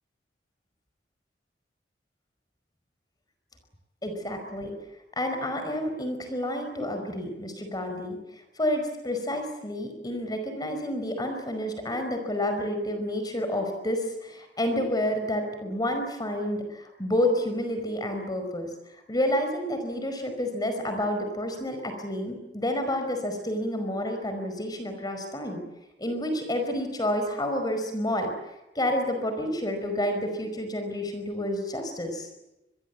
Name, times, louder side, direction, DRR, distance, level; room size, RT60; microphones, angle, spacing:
voice 1, 4.0-4.7 5.2-25.6 26.0-32.3, left 1 dB, 25° left, 6 dB, 5.0 m, -29 dB
27.0 x 22.5 x 8.4 m, 0.95 s
head